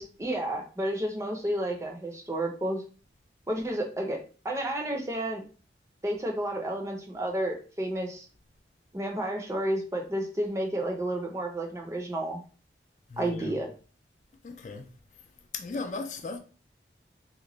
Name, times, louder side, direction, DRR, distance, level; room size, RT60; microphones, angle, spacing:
voice 1, 0.0-2.8 3.5-4.2 4.4-5.4 6.0-8.3 8.9-12.4 13.2-13.7, right 1 dB, 15° right, 0.5 m, -31 dB
voice 2, 13.1-13.6 14.4-14.9 15.5-16.4, left 3 dB, 40° left, 0.3 m, -36 dB
3.0 x 2.2 x 3.8 m
head